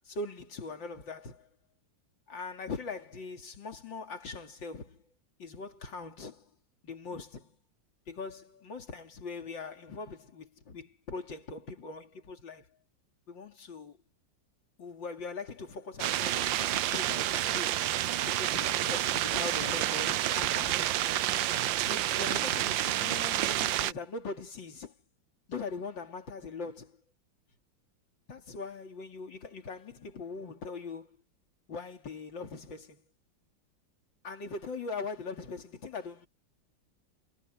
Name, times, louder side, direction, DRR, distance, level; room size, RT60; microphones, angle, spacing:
voice 1, 0.1-1.5 2.3-5.0 5.4-6.5 6.8-7.6 8.1-12.7 13.3-14.0 14.8-17.8 18.2-21.4 21.9-25.0 25.5-27.0 28.3-31.2 31.7-33.0 34.2-36.3, left 4 dB, 70° left, 3.5 m, -41 dB
sound 1, 16.0-23.9, right 13 dB, 75° right, 1.4 m, -29 dB
omnidirectional pair, 2.1 m